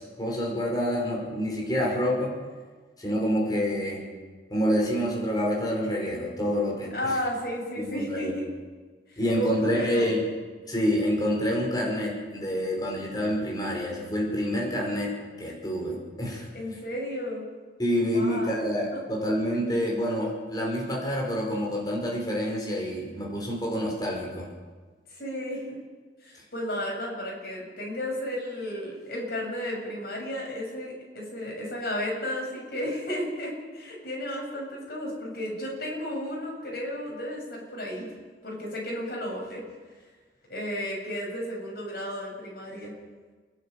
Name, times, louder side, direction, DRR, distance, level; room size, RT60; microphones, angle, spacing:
voice 1, 0.0-2.4 3.0-4.0 4.5-7.2 7.7-8.3 9.2-10.3 10.7-16.5 17.8-24.5, equal, 20° left, -2 dB, 5.5 m, -27 dB
voice 2, 6.9-8.5 9.1-10.1 16.5-17.5 18.1-18.6 18.9-19.0 25.1-25.8 26.2-38.1 38.4-39.6 40.5-42.9, left 1 dB, 60° left, -2 dB, 8.0 m, -33 dB
29.0 x 12.0 x 9.0 m, 1.4 s
head